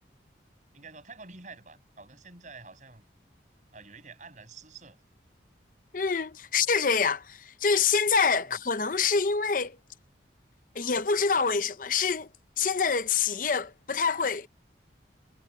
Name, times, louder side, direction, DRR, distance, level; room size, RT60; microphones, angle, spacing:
voice 1, 0.7-3.1 3.7-5.0 8.4-8.6, right 4 dB, 40° right, 7.9 m, -48 dB
voice 2, 5.9-9.8 10.7-12.3 12.6-14.5, left 5 dB, 45° left, 0.8 m, -26 dB
head